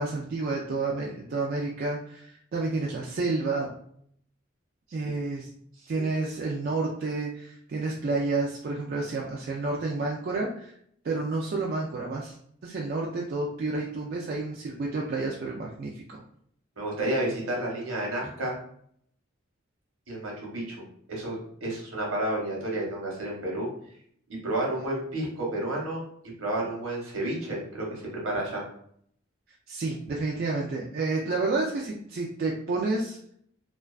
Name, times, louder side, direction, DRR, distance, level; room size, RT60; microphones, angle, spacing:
voice 1, 0.0-3.7 4.9-5.5 5.9-10.7 11.0-12.4 12.6-16.2 29.7-33.3, right 3 dB, 45° right, -2 dB, 0.3 m, -30 dB
voice 2, 16.8-18.5 20.1-20.8 21.1-23.7 24.4-26.0 26.4-28.6, right 1 dB, 75° right, -2 dB, 0.9 m, -31 dB
2.4 x 2.2 x 2.3 m, 0.65 s
head